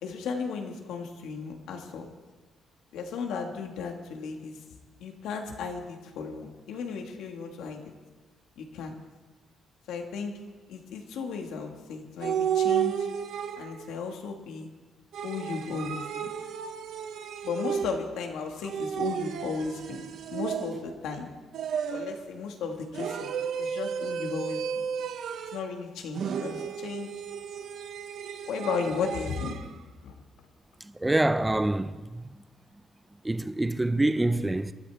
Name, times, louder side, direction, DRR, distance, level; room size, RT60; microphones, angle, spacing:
voice 1, 0.0-2.1 2.9-4.6 5.0-7.8 8.6-9.0 9.9-10.3 10.7-13.1 13.6-14.7 15.2-16.3 17.4-21.3 21.9-23.3 23.6-24.6 25.5-27.1 28.5-29.5 30.0-30.2, left 5 dB, 85° left, 1.9 m, -35 dB
sound 1, 12.2-13.9 15.1-18.2 18.7-21.0 21.5-22.2 22.9-25.7 26.1-29.7, right 8 dB, 75° right, 0.9 m, -33 dB
voice 2, 31.0-32.2 33.2-34.7, right 2 dB, 15° right, 0.5 m, -26 dB
24.5 x 13.0 x 3.5 m
cardioid pair, 90°, 0 cm